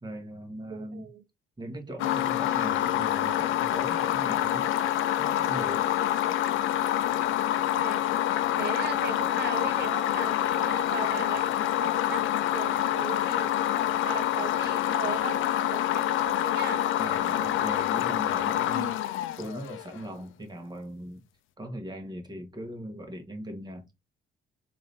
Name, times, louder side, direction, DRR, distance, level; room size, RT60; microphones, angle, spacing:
voice 1, 0.0-1.1 1.6-4.7 5.2-5.9 17.0-21.2 21.6-23.9, right 1 dB, 20° right, 1.3 m, -39 dB
voice 2, 0.7-1.2 6.2-6.3 7.7-8.0 8.6-13.5 14.0-16.9, right 7 dB, 60° right, 0.8 m, -38 dB
sound 1, 2.0-20.0, left 12 dB, 80° left, 0.4 m, -27 dB
3.7 x 2.7 x 3.3 m
cardioid pair, 90°, 20 cm